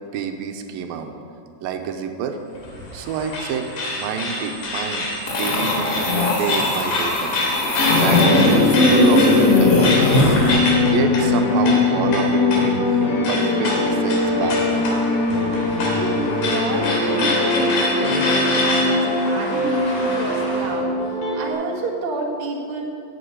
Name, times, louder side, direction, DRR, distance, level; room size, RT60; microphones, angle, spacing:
voice 1, 0.1-1.1 1.6-2.4 2.9-7.3 8.0-13.0 13.3-14.9, right 6 dB, 85° right, 5 dB, 2.5 m, -28 dB
sound 1, 2.6-20.7, left 2 dB, 90° left, 4.5 m, -27 dB
sound 2, 5.3-10.6, left 2 dB, 75° left, 0.7 m, -19 dB
sound 3, 7.8-21.5, left 3 dB, 50° left, 2.6 m, -21 dB
voice 2, 15.8-22.8, right 3 dB, 45° right, -3 dB, 2.1 m, -29 dB
11.5 x 7.9 x 8.6 m, 2.6 s
omnidirectional pair, 4.1 m